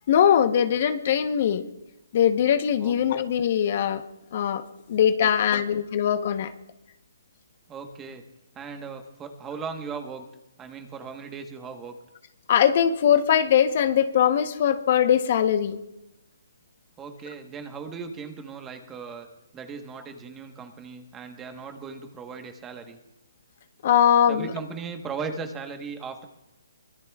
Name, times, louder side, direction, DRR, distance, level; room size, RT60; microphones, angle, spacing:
voice 1, 0.1-1.6 2.1-4.0 4.3-6.5 12.5-15.8 23.8-24.5, left 9 dB, 45° left, 9 dB, 1.0 m, -21 dB
voice 2, 2.8-3.2 5.2-5.3 7.7-8.2 8.5-10.2 10.6-12.0 17.0-19.3 19.5-23.0 24.3-26.2, right 5 dB, 15° right, 5 dB, 1.3 m, -37 dB
24.0 x 21.5 x 2.4 m, 0.92 s
hypercardioid pair, 160°, 0 cm